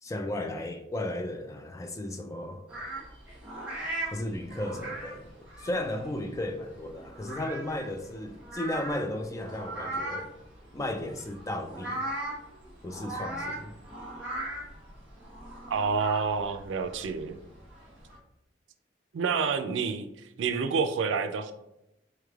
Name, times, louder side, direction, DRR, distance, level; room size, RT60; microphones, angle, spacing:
voice 1, 0.0-2.6 4.1-5.3 5.6-10.3 10.7-12.0 12.8-13.7, left 1 dB, 15° left, 5 dB, 0.3 m, -34 dB
sound 1, 2.7-18.2, right 1 dB, 10° right, 1.1 m, -39 dB
voice 2, 15.7-17.4 19.1-20.1 20.4-21.5, right 5 dB, 90° right, 8 dB, 0.4 m, -28 dB
4.5 x 3.2 x 2.3 m, 0.87 s
head